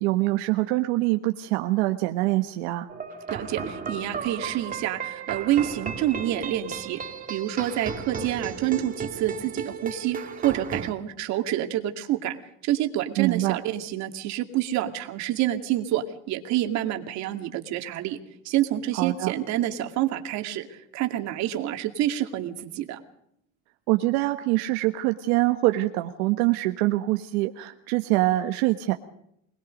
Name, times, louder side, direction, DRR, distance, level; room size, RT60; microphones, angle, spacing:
voice 1, 0.0-2.9 13.2-13.6 18.9-19.3 23.9-28.9, right 18 dB, 80° right, 6 dB, 1.4 m, -24 dB
sound 1, 2.9-10.9, right 6 dB, 25° right, 2.3 m, -34 dB
voice 2, 3.3-7.0 7.3-12.4 12.6-18.2 18.4-23.0, right 12 dB, 55° right, 6 dB, 2.4 m, -28 dB
24.5 x 20.5 x 5.3 m, 0.73 s
cardioid pair, 130°, 32 cm